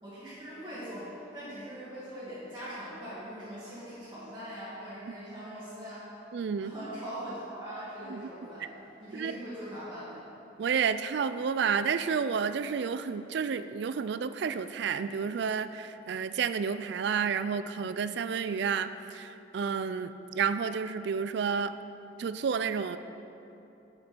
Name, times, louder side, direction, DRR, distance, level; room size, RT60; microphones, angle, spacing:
voice 1, 0.0-6.1 6.6-8.7 9.0-10.2, equal, 15° right, -14 dB, 2.2 m, -41 dB
voice 2, 6.3-6.7 8.1-8.3 9.1-9.4 10.6-21.7 22.2-23.0, right 6 dB, 55° right, 12 dB, 0.3 m, -30 dB
8.4 x 7.9 x 4.4 m, 2.9 s
head